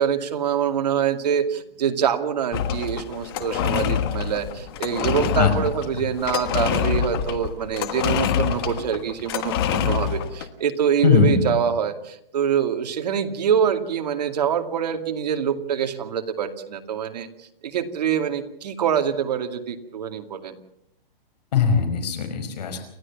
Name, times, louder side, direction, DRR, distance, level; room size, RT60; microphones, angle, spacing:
voice 1, 0.0-20.6, right 8 dB, 45° right, 5 dB, 2.3 m, -25 dB
sound 1, 2.5-10.5, left 9 dB, 25° left, 1.4 m, -26 dB
voice 2, 11.0-11.5 21.5-22.8, left 6 dB, 45° left, 8 dB, 5.1 m, -20 dB
29.5 x 13.0 x 7.2 m, 0.75 s
hypercardioid pair, 170°, 29 cm